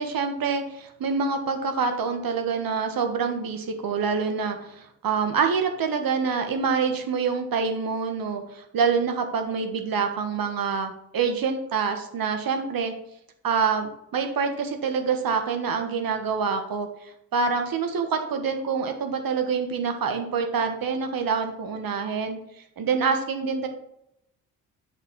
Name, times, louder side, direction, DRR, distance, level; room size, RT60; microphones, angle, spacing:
voice 1, 0.0-12.9 13.4-22.4 22.8-23.7, right 5 dB, 50° right, 6 dB, 1.4 m, -26 dB
6.8 x 4.6 x 4.6 m, 0.78 s
hypercardioid pair, 40°, 45 cm